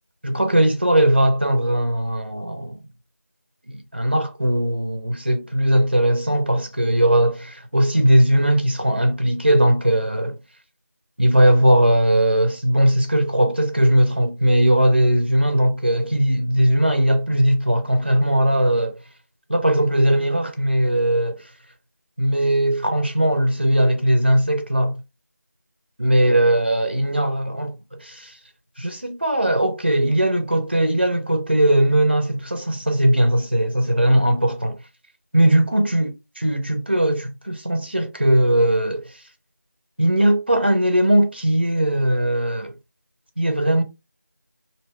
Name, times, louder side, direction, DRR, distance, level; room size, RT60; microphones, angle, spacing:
voice 1, 0.2-2.9 3.7-10.4 11.2-19.0 19.5-21.4 22.2-24.9 26.0-28.3 28.8-34.8 35.3-36.1 36.4-39.0 40.0-42.7 43.4-43.8, right 1 dB, 35° right, 0.5 m, -19 dB
2.7 x 2.2 x 3.0 m
figure-of-eight pair, 175°, 10 cm